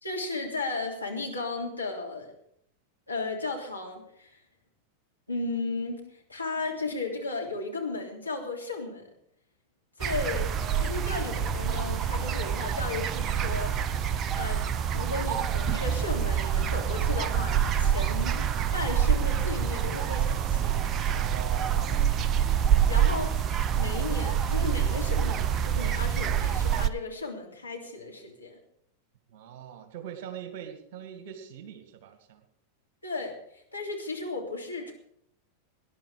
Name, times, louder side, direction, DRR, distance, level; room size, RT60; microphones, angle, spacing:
voice 1, 0.0-2.3 3.1-4.4 5.3-9.1 10.0-13.7 14.3-20.8 22.9-23.4 23.8-28.6 33.0-34.9, left 3 dB, 85° left, -1 dB, 3.2 m, -35 dB
sound 1, 10.0-26.9, right 8 dB, 30° right, 0.8 m, -26 dB
voice 2, 21.1-22.3 29.3-32.4, right 9 dB, 50° right, 7 dB, 2.1 m, -42 dB
19.5 x 11.0 x 4.9 m, 0.71 s
figure-of-eight pair, 90°, 0 cm